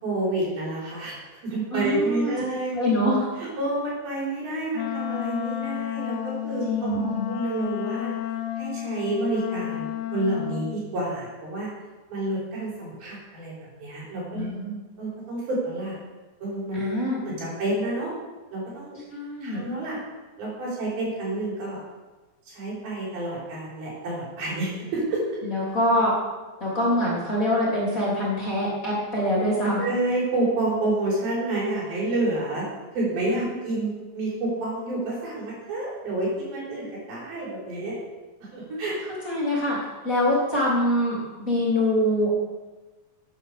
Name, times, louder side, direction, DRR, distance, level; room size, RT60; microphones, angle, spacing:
voice 1, 0.0-2.9 3.4-8.1 8.6-11.7 12.1-13.5 13.8-14.5 15.0-15.9 16.4-18.1 18.5-19.0 19.4-20.0 20.4-21.8 22.5-25.2 29.8-32.6 32.9-38.0 38.4-39.0, right 2 dB, 85° right, -6 dB, 6.5 m, -29 dB
voice 2, 1.7-2.3 2.7-3.3 6.7-7.2 14.3-14.8 16.7-17.2 19.1-19.6 25.4-26.2 26.6-29.8 33.3-33.5 38.7-38.8 39.2-39.8 40.0-42.4, equal, 25° left, -6 dB, 3.4 m, -24 dB
Wind instrument woodwind instrument, 4.7-10.8, left 13 dB, 80° left, 1.7 m, -31 dB
14.0 x 9.2 x 5.0 m, 1.2 s
omnidirectional pair, 4.1 m